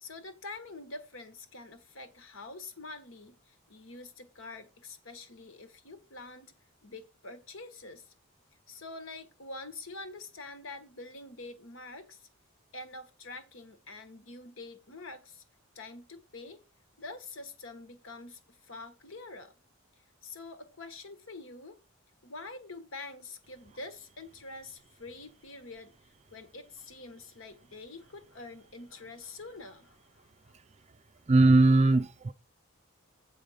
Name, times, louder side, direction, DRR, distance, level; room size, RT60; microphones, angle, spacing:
voice 1, 0.0-6.5 6.8-8.1 8.7-12.3 12.7-15.4 15.7-16.6 17.0-19.5 20.2-21.8 22.2-25.9 26.3-30.6, left 3 dB, 70° left, 1.5 m, -46 dB
voice 2, 31.3-32.3, right 2 dB, 30° right, 0.4 m, -20 dB
7.7 x 5.1 x 6.3 m
head